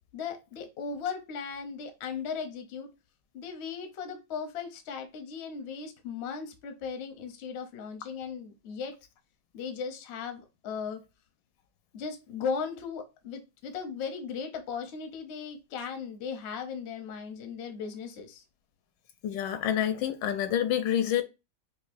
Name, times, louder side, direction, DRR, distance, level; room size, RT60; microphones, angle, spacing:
voice 1, 0.1-2.9 3.3-9.0 9.5-11.0 11.9-18.4, left 6 dB, 60° left, 0.7 m, -37 dB
voice 2, 19.2-21.2, left 10 dB, 80° left, 1.3 m, -27 dB
5.3 x 2.0 x 2.5 m
omnidirectional pair, 1.9 m